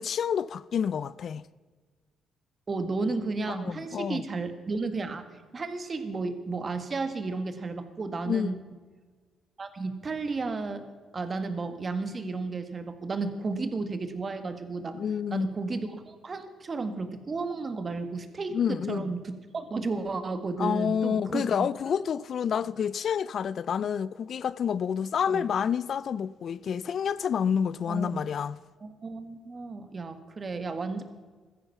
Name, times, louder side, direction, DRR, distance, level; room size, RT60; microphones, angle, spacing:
voice 1, 0.0-1.4 3.6-4.2 8.3-8.5 14.9-15.5 18.5-19.2 20.6-28.6, left 7 dB, 55° left, 0.4 m, -29 dB
voice 2, 2.7-5.2 5.5-8.6 9.6-10.8 11.1-15.0 15.3-21.5 25.3-25.5 27.9-28.2 28.8-31.0, right 3 dB, 35° right, 1.8 m, -33 dB
15.5 x 13.5 x 5.9 m
cardioid pair, 90°, 0 cm